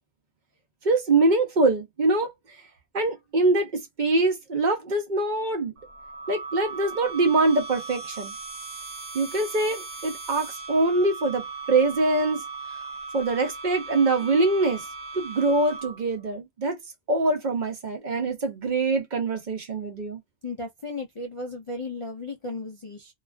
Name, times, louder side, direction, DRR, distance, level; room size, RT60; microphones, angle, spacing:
voice 1, 0.8-2.3 2.9-5.7 6.3-8.3 9.1-12.4 13.1-14.8 15.1-16.8 17.1-20.2, right 2 dB, 50° right, 0.7 m, -24 dB
sound 1, 5.8-16.1, right 4 dB, 90° right, 1.2 m, -38 dB
voice 2, 20.4-23.1, left 3 dB, 50° left, 0.4 m, -35 dB
2.3 x 2.3 x 2.3 m
omnidirectional pair, 1.1 m